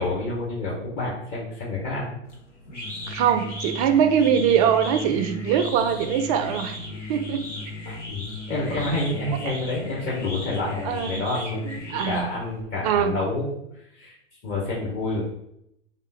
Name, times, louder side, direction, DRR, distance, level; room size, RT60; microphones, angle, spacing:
voice 1, 0.0-2.2 7.9-11.7 12.0-14.1 14.4-15.2, left 2 dB, 30° left, -5 dB, 1.1 m, -28 dB
sound 1, 2.2-12.6, left 1 dB, 85° left, 1.2 m, -36 dB
voice 2, 3.1-6.8 7.1-7.5 10.8-11.2 11.6-12.3 12.8-13.2, right 8 dB, 35° right, 8 dB, 0.4 m, -22 dB
3.5 x 2.5 x 4.0 m, 0.78 s
figure-of-eight pair, 95°, 35 cm